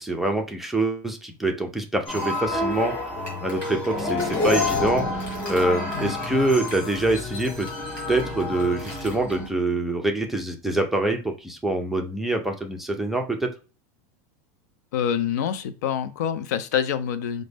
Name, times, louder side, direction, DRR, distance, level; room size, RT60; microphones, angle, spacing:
voice 1, 0.0-2.9 3.4-7.7 8.1-13.5, right 2 dB, ahead, 0.3 m, -25 dB
sound 1, 2.1-9.5, left 2 dB, 15° left, 1.7 m, -28 dB
voice 2, 14.9-17.4, left 8 dB, 75° left, 0.5 m, -26 dB
5.0 x 2.1 x 3.3 m
supercardioid pair, 175°, 9 cm